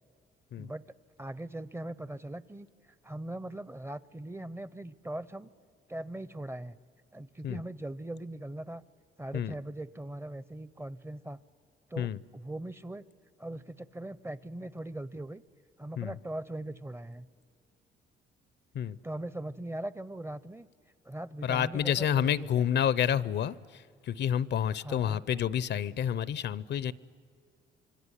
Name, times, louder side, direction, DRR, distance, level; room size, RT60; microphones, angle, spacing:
voice 1, 1.2-2.7 3.0-5.5 5.9-6.8 7.1-8.8 9.2-11.4 11.9-13.0 13.4-15.4 15.8-17.3 19.0-20.7 21.0-22.7 24.8-25.2, right 1 dB, 10° right, 18 dB, 0.6 m, -40 dB
voice 2, 21.4-26.9, left 9 dB, 60° left, 19 dB, 0.6 m, -29 dB
26.0 x 23.0 x 9.9 m, 2.1 s
cardioid pair, 90°, 20 cm